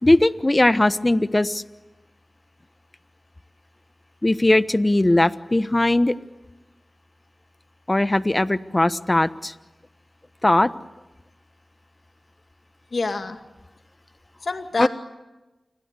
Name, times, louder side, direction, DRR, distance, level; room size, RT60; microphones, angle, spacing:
voice 1, 0.0-1.6 4.2-6.1 7.9-9.5 10.4-10.7 14.8-14.9, left 1 dB, 30° left, 13 dB, 1.1 m, -19 dB
voice 2, 12.9-13.4 14.4-14.9, left 3 dB, 75° left, 6 dB, 2.3 m, -26 dB
28.5 x 23.0 x 8.3 m, 1.1 s
cardioid pair, 40°, 0 cm